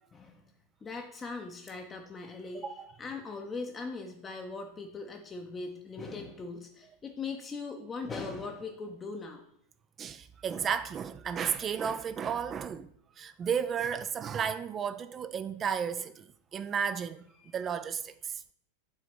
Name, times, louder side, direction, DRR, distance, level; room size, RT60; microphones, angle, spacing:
voice 1, 0.1-0.4 0.8-9.4 17.4-17.5, left 4 dB, 20° left, 0.7 m, -40 dB
voice 2, 2.5-2.9 10.0-12.9 13.2-17.2 17.5-18.4, right 7 dB, 25° right, 0.4 m, -33 dB
7.2 x 3.9 x 6.2 m
figure-of-eight pair, 90°, 0 cm